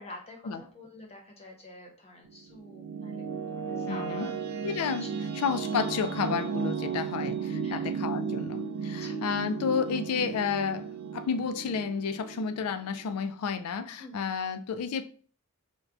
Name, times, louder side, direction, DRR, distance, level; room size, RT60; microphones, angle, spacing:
voice 1, 0.0-4.3 5.0-5.1 5.8-5.9 7.6-8.0 9.0-9.2 14.0-14.3, left 1 dB, 25° left, 0.7 m, -47 dB
sound 1, 2.3-13.3, right 6 dB, 85° right, 0.4 m, -34 dB
voice 2, 3.9-4.3 4.6-5.1 5.4-10.9 11.1-15.0, left 6 dB, 80° left, 0.4 m, -31 dB
4.6 x 2.1 x 2.4 m
head